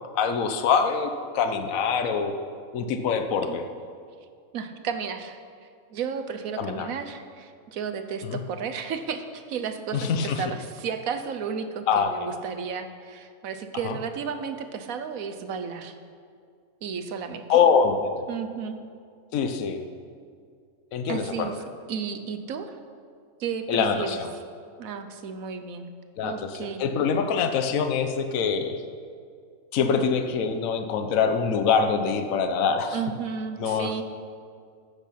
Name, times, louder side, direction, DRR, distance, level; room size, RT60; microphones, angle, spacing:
voice 1, 0.1-2.3 2.7-3.6 6.6-6.9 8.2-8.4 9.9-10.4 11.9-12.1 13.8-14.0 17.5-18.0 19.3-19.8 20.9-21.5 23.7-24.3 26.2-28.8 29.7-33.0 33.6-33.9, left 6 dB, 70° left, 6 dB, 1.2 m, -24 dB
voice 2, 4.5-5.4 5.9-16.0 16.8-17.4 18.3-18.8 21.1-21.6 21.9-22.8 23.4-24.2 24.8-25.9 26.2-26.8 32.9-34.0, right 6 dB, 75° right, 8 dB, 1.3 m, -33 dB
14.5 x 7.2 x 5.8 m, 2.2 s
omnidirectional pair, 1.5 m